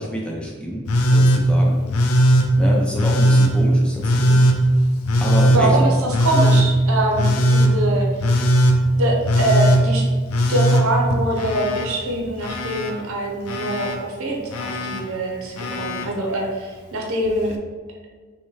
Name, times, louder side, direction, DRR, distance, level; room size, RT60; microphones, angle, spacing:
voice 1, 0.0-1.8 2.6-4.5 5.2-5.9, equal, 5° left, -3 dB, 0.6 m, -27 dB
Telephone, 0.9-1.4 1.9-2.5 3.0-3.5 4.0-4.6 5.1-5.6 6.1-6.7 7.2-7.7 8.2-8.8 9.2-9.8 10.3-11.9 12.1-12.9 13.5-14.0 14.5-15.0 15.6-16.1 17.3-17.4, equal, 90° left, 0.5 m, -18 dB
voice 2, 5.5-8.1 9.0-10.1 10.5-17.5, right 1 dB, 75° right, 0 dB, 0.8 m, -24 dB
5.5 x 2.2 x 3.2 m, 1.5 s
head